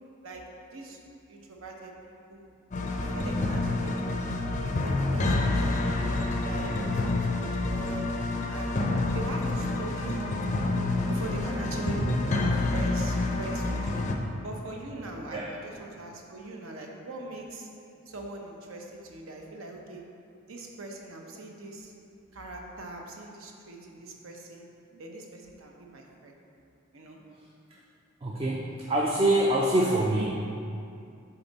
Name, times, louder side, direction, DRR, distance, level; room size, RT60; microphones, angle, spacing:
voice 1, 1.3-1.9 2.3-2.5 3.0-4.1 4.6-8.1 8.5-8.8 9.1-10.6 11.1-14.0 14.4-17.7 18.1-20.0 20.5-21.9 22.3-24.7 25.0-26.4 26.9-27.2, right 2 dB, 75° right, 1 dB, 0.8 m, -41 dB
sound 1, 2.7-14.1, left 2 dB, 35° left, 0.4 m, -28 dB
voice 2, 28.2-30.3, right 1 dB, 25° right, -2 dB, 0.4 m, -25 dB
6.9 x 4.1 x 4.0 m, 2.5 s
head